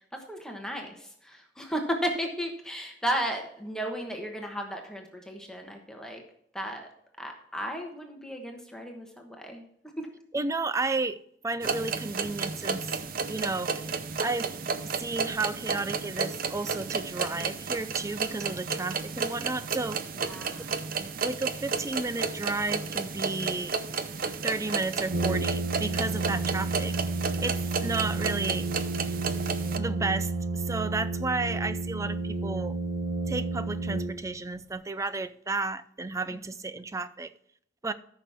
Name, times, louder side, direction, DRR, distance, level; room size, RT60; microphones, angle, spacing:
voice 1, 0.1-6.2 6.5-6.9 7.2-9.6 10.0-10.1 20.2-20.7 36.3-36.4, equal, 5° left, 1.2 m, -34 dB
voice 2, 10.3-11.2 11.4-12.9 13.3-13.9 14.2-14.6 14.9-20.0 20.6-20.7 21.0-23.8 24.2-27.0 27.4-28.7 29.7-32.8 33.3-37.3 37.8-37.9, right 3 dB, 15° right, 0.4 m, -32 dB
sound 1, 11.6-29.8, right 5 dB, 50° right, 0.7 m, -32 dB
Brass instrument, 25.1-34.6, right 3 dB, 85° right, 1.2 m, -31 dB
14.0 x 5.9 x 3.5 m
head